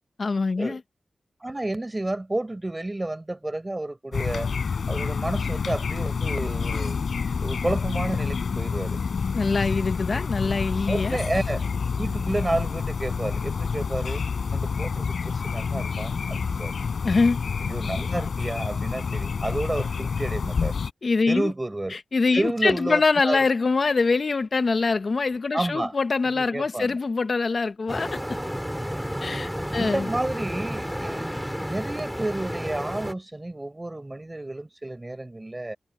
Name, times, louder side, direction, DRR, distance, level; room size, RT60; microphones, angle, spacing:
voice 1, 0.2-0.8 9.3-11.2 17.0-17.4 21.0-21.5 21.9-28.2 29.2-30.1, left 4 dB, 60° left, 1.2 m, -24 dB
voice 2, 1.4-4.5 4.9-7.0 7.4-9.0 10.9-11.6 12.0-14.2 14.5-16.7 17.6-20.8 21.3-22.0 22.3-23.4 25.5-25.9 26.3-27.0 29.7-35.8, right 2 dB, 25° right, 6.5 m, -30 dB
sound 1, 4.1-20.9, left 5 dB, 75° left, 4.7 m, -28 dB
sound 2, 27.9-33.1, equal, ahead, 6.9 m, -31 dB
cardioid pair, 45°, 0 cm